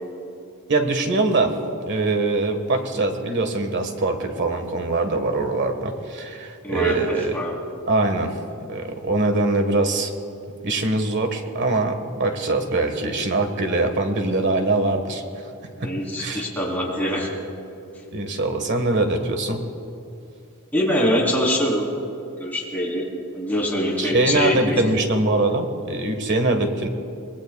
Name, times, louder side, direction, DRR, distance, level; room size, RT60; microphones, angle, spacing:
voice 1, 0.7-1.6 1.8-7.4 7.9-8.4 8.7-10.1 10.6-15.2 15.6-15.9 16.2-16.5 18.1-19.6 24.0-26.9, right 2 dB, 55° right, 6 dB, 1.5 m, -23 dB
voice 2, 6.6-7.5 15.8-17.3 20.7-21.9 22.3-23.1 23.3-24.8, equal, 10° left, -4 dB, 3.7 m, -24 dB
25.0 x 20.5 x 2.4 m, 2.7 s
head